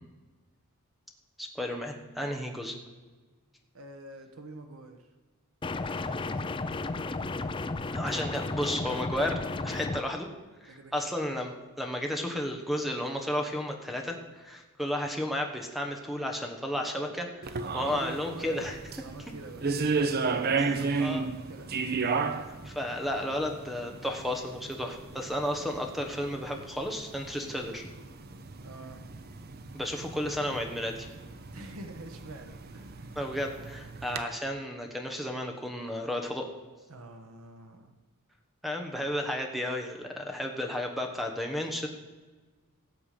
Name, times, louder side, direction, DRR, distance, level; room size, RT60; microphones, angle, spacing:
voice 1, 1.4-2.7 7.9-10.3 10.6-17.3 17.7-18.8 21.0-21.3 22.6-27.9 29.7-31.1 33.1-36.5 38.6-41.9, left 1 dB, ahead, 3 dB, 1.2 m, -33 dB
voice 2, 3.7-5.1 6.0-6.8 10.6-11.1 16.7-17.2 17.7-18.7 19.0-21.1 21.5-21.7 25.4-25.9 27.4-27.5 28.6-29.1 31.5-33.1 36.9-37.9, right 2 dB, 75° right, 5 dB, 1.2 m, -46 dB
sound 1, 5.6-10.0, left 3 dB, 25° left, 0.4 m, -33 dB
sound 2, 17.4-34.2, right 4 dB, 45° right, 0.7 m, -34 dB
17.0 x 7.2 x 5.0 m, 1.3 s
head